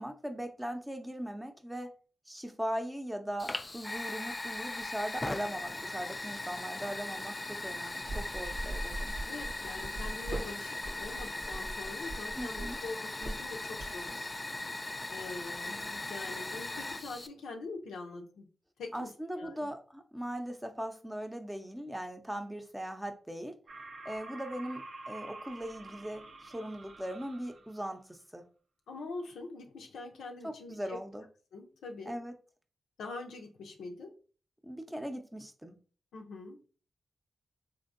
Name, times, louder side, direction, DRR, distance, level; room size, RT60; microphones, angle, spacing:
voice 1, 0.0-1.9 2.3-9.1 12.4-12.8 18.9-23.5 24.0-28.4 30.4-31.2 32.1-32.3 34.6-35.7, equal, 10° right, 6 dB, 0.6 m, -39 dB
Fire, 3.4-17.3, left 2 dB, 30° left, 0.3 m, -39 dB
sound 1, 8.0-14.1, right 2 dB, 80° right, 1.1 m, -40 dB
voice 2, 9.2-14.3 15.1-18.5 18.8-19.7 28.9-31.0 31.5-32.2 33.0-34.1 36.1-36.6, left 3 dB, 85° left, 2 dB, 0.5 m, -44 dB
sound 2, 23.7-27.9, right 2 dB, 60° right, 0.4 m, -47 dB
3.6 x 2.6 x 2.5 m, 0.39 s
supercardioid pair, 45°, 0 cm